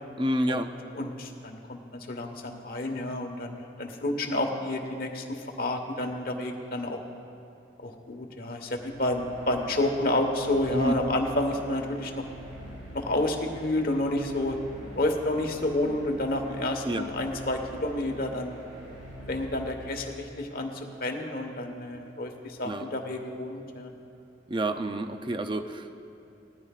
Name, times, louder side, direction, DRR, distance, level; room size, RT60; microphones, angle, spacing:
voice 1, 0.2-0.7 10.7-10.9 16.8-17.0 22.6-22.9 24.5-25.9, right 1 dB, 25° right, 8 dB, 0.5 m, -28 dB
voice 2, 0.9-7.0 7.8-12.2 12.9-14.6 15.0-18.6 19.3-23.9, left 1 dB, 55° left, 3 dB, 1.2 m, -30 dB
sound 1, 8.6-20.3, equal, 80° right, 2.6 m, -45 dB
19.5 x 14.0 x 2.4 m, 2.7 s
head